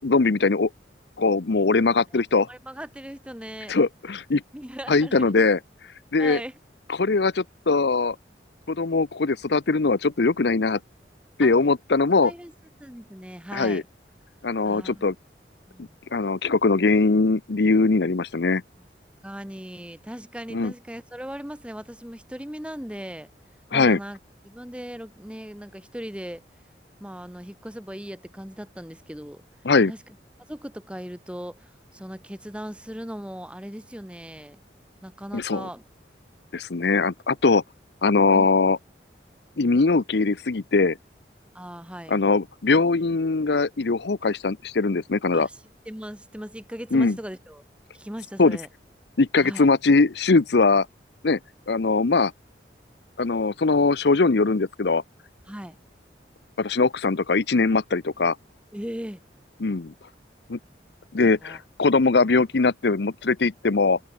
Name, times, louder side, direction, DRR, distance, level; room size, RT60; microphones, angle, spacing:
voice 1, 0.0-0.7 1.2-2.5 3.7-4.4 4.9-5.6 6.1-6.4 6.9-8.2 8.7-10.8 11.4-12.3 13.5-13.8 14.4-15.1 16.1-18.6 20.5-20.7 23.7-24.0 29.6-29.9 35.3-35.7 36.5-37.6 38.0-38.8 39.6-41.0 42.1-45.5 46.9-47.2 48.4-48.6 49.2-50.9 51.2-51.4 51.7-52.3 53.2-55.0 56.6-58.4 59.6-59.9 60.5-60.6 61.1-64.0, left 3 dB, 70° left, 0.7 m, -21 dB
voice 2, 2.5-3.8 4.5-5.2 6.2-6.5 11.4-11.5 12.2-12.5 12.8-13.8 14.6-15.1 15.7-16.0 18.8-18.9 19.2-23.3 23.7-24.2 24.4-26.4 27.0-29.4 29.9-30.1 30.5-34.6 35.0-35.8 38.3-38.5 41.5-42.2 45.3-45.6 45.9-47.6 47.9-48.7 49.4-49.7 55.5-55.8 58.7-59.2 61.4-61.6, equal, 5° right, 1.8 m, -38 dB
open air
head